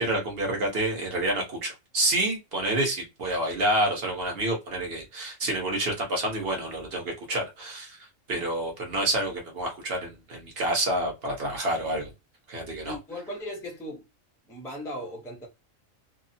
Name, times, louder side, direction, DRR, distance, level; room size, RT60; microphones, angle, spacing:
voice 1, 0.0-8.0 8.3-12.1 12.5-13.0, right 1 dB, 50° right, 1.1 m, -28 dB
voice 2, 12.8-14.0 14.5-15.5, equal, 5° left, 0.4 m, -37 dB
2.7 x 2.1 x 2.6 m
omnidirectional pair, 1.4 m